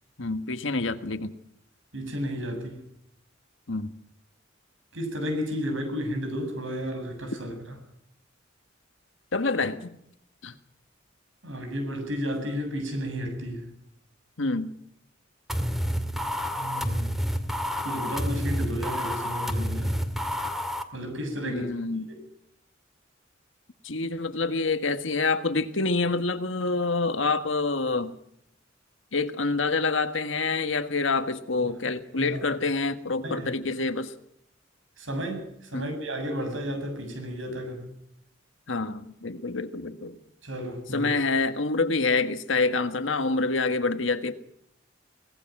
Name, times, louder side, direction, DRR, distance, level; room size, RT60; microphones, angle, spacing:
voice 1, 0.2-1.3 3.7-3.9 9.3-10.0 10.4-10.5 14.4-14.7 21.4-22.1 23.8-28.1 29.1-34.1 35.7-35.9 38.7-40.2 40.9-44.3, left 3 dB, 75° left, 9 dB, 1.7 m, -27 dB
voice 2, 1.9-2.8 4.9-7.8 11.4-13.7 16.5-17.2 17.8-20.0 20.9-21.7 22.1-22.2 31.6-31.7 32.2-32.4 33.2-33.5 35.0-37.9 40.4-41.1, equal, 80° right, 5 dB, 7.8 m, -32 dB
sound 1, 15.5-20.8, equal, ahead, 2.1 m, -29 dB
23.5 x 19.0 x 6.1 m, 0.74 s
head